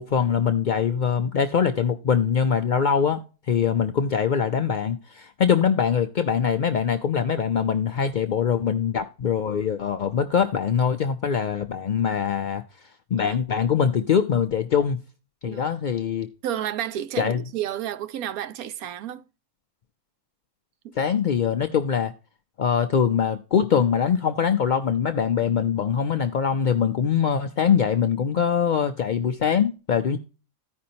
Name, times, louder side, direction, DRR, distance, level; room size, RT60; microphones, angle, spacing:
voice 1, 0.0-3.2 3.5-12.6 13.1-15.0 15.4-16.3 17.2-17.4 21.0-22.1 22.6-30.2, left 7 dB, 75° left, 0.4 m, -23 dB
voice 2, 16.4-19.2 20.8-20.9, right 11 dB, 90° right, 1.1 m, -31 dB
14.5 x 5.2 x 2.8 m
omnidirectional pair, 1.5 m